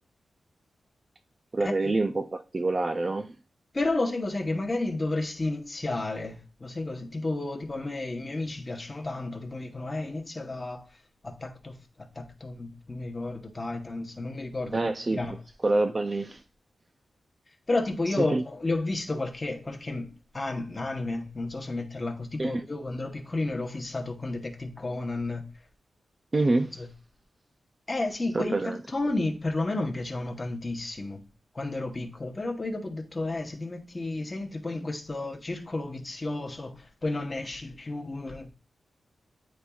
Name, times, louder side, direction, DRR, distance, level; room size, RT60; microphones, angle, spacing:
voice 1, 1.5-3.3 14.7-15.2 15.6-16.4 18.2-18.4 22.4-22.7 26.3-26.7 28.3-28.8, right 2 dB, 25° right, 0.3 m, -26 dB
voice 2, 3.7-10.8 11.2-11.8 12.1-15.3 17.7-25.4 26.8-26.9 27.9-31.2 31.5-38.5, left 2 dB, 20° left, 0.9 m, -32 dB
9.9 x 4.2 x 2.3 m
wide cardioid pair, 160°, 0 cm